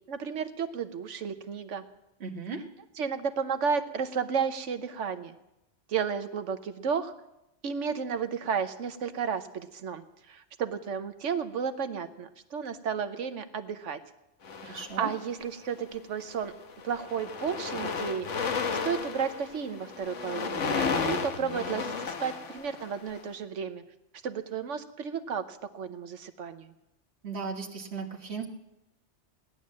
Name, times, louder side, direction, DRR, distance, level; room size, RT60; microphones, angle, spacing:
voice 1, 0.1-1.8 3.0-5.4 5.9-7.1 7.6-14.0 14.6-16.5 16.8-18.3 18.8-23.8 24.2-26.7, right 6 dB, 80° right, 9 dB, 1.2 m, -33 dB
voice 2, 2.2-2.6 14.7-15.1 27.2-28.4, right 5 dB, 65° right, 1 dB, 1.7 m, -36 dB
sound 1, 14.4-15.4 16.2-16.4 16.7-23.2, left 5 dB, 85° left, 1.5 m, -33 dB
17.5 x 11.0 x 7.4 m, 0.90 s
omnidirectional pair, 1.2 m